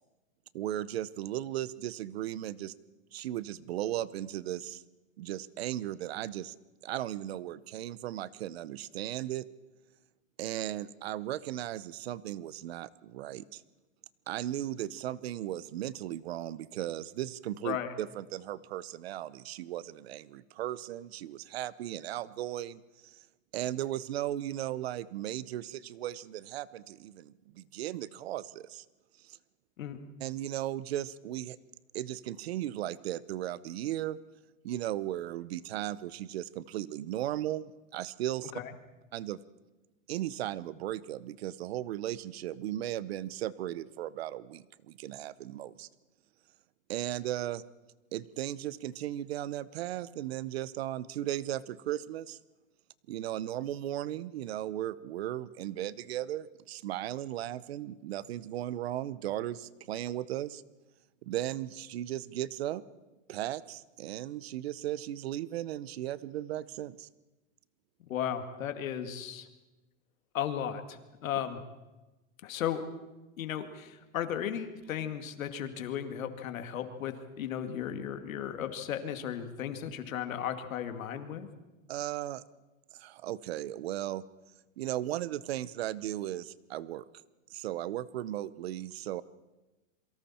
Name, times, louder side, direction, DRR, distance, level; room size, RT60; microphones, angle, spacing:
voice 1, 0.5-2.7 3.1-4.8 5.2-6.5 6.8-9.5 10.4-13.6 14.3-23.2 23.5-28.8 29.2-29.4 30.2-31.6 31.9-34.2 34.6-38.5 39.1-39.4 40.1-45.9 46.9-47.6 48.1-52.4 53.1-60.6 61.2-62.8 63.3-67.1 81.9-82.4 82.9-84.2 84.8-87.0 87.5-89.2, right 13 dB, 50° right, 19 dB, 0.8 m, -36 dB
voice 2, 68.1-69.5 70.3-71.6 72.4-72.8 73.4-81.5, left 9 dB, 85° left, 7 dB, 2.4 m, -35 dB
28.0 x 24.0 x 4.4 m, 1.1 s
supercardioid pair, 180°, 39 cm